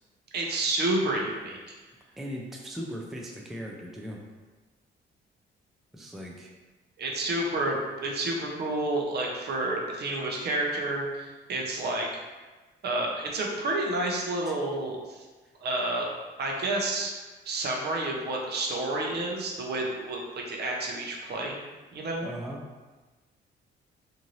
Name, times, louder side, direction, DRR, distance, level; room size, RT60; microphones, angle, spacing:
voice 1, 0.3-1.7 7.0-12.1 12.8-15.2 15.6-16.1 16.4-17.1 17.4-21.6 21.9-22.3, right 2 dB, 55° right, -1 dB, 0.7 m, -30 dB
voice 2, 2.2-4.2 5.9-6.5 14.5-14.6 22.2-22.6, equal, ahead, -1 dB, 0.4 m, -38 dB
2.7 x 2.6 x 3.0 m, 1.3 s
cardioid pair, 90°, 20 cm